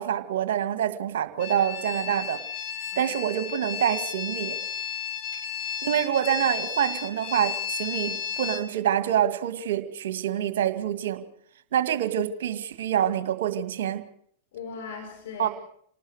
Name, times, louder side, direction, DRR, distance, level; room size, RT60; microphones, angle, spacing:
voice 1, 0.0-2.4 3.0-4.6 5.8-11.2 11.7-14.0 15.4-15.5, right 10 dB, 70° right, 10 dB, 1.9 m, -26 dB
sound 1, 1.4-8.6, left 8 dB, 45° left, 3.3 m, -33 dB
voice 2, 14.5-15.5, left 5 dB, 65° left, 3 dB, 5.2 m, -39 dB
28.5 x 19.0 x 4.9 m, 0.65 s
hypercardioid pair, 95°, 0 cm